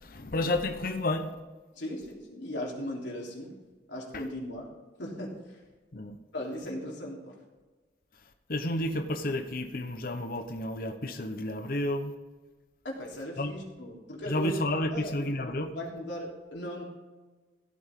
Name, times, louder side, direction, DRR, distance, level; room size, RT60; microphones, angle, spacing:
voice 1, 0.0-1.3 5.9-6.2 8.5-12.1 13.4-13.5 14.3-15.7, left 1 dB, 55° left, 7 dB, 0.9 m, -31 dB
voice 2, 1.7-3.6 3.9-4.7 5.0-5.6 6.3-7.4 12.8-14.5 14.9-16.8, equal, 85° left, -3 dB, 3.4 m, -38 dB
15.5 x 8.5 x 3.7 m, 1.3 s
head